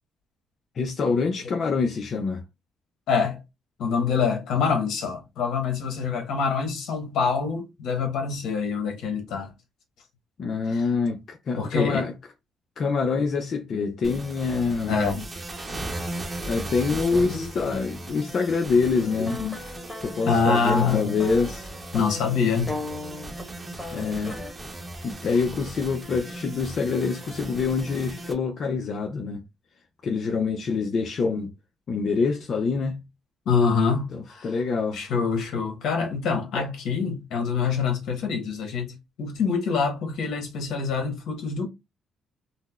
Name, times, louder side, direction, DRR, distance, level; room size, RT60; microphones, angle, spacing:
voice 1, 0.8-2.4 10.4-12.1 12.8-15.1 16.5-19.4 20.0-21.7 23.9-24.4 25.0-29.4 30.0-31.5 31.9-33.0 34.1-35.0 36.5-36.6, left 4 dB, 50° left, 0.5 m, -26 dB
voice 2, 3.1-3.4 3.8-9.5 10.7-10.8 11.6-12.1 14.9-15.3 17.1-17.5 19.2-19.6 20.3-21.2 21.9-22.7 25.2-25.4 33.4-34.6 34.9-41.7, left 5 dB, 75° left, 1.1 m, -25 dB
sound 1, 14.0-28.3, right 1 dB, 25° right, 0.8 m, -37 dB
sound 2, 19.0-24.5, left 2 dB, 10° left, 1.3 m, -38 dB
3.9 x 2.1 x 2.3 m
cardioid pair, 100°, 0 cm